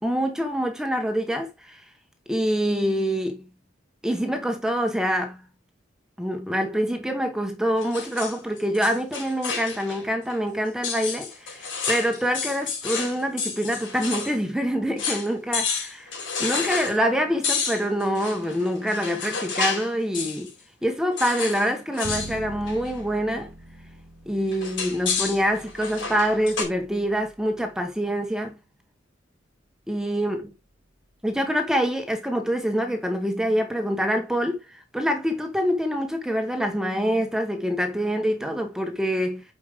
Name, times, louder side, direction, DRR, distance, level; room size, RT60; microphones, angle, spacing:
voice 1, 0.0-1.8 2.3-3.4 4.0-5.4 6.2-16.1 16.4-20.5 20.8-23.5 24.2-28.6 29.9-30.4 31.2-39.4, equal, 5° right, 1.3 m, -25 dB
sound 1, 7.8-10.0 10.3-10.4 10.8-14.4 14.6-14.7 15.0-15.3 15.5-17.0 17.4-19.9 20.1-20.5 21.2-21.7 21.9-22.3 22.7-23.0 24.5-26.6, left 5 dB, 90° left, 4.4 m, -30 dB
Bowed string instrument, 22.0-28.2, right 1 dB, 50° right, 1.3 m, -44 dB
8.5 x 5.2 x 3.6 m
head